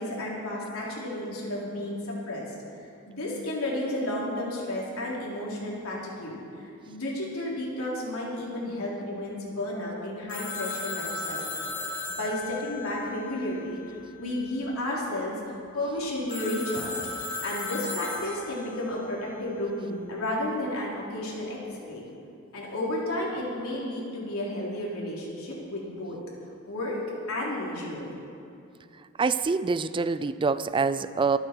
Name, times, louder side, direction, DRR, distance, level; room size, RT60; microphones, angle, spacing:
voice 1, 0.0-2.5 3.1-11.5 12.1-22.0 22.5-26.2 26.7-27.0 27.3-28.0, left 1 dB, 70° left, -5 dB, 3.8 m, -32 dB
Telephone, 10.3-13.9 16.3-18.8, left 3 dB, 35° left, 1.9 m, -36 dB
voice 2, 29.2-31.4, right 4 dB, 25° right, 14 dB, 0.3 m, -25 dB
25.0 x 9.2 x 4.6 m, 2.6 s
head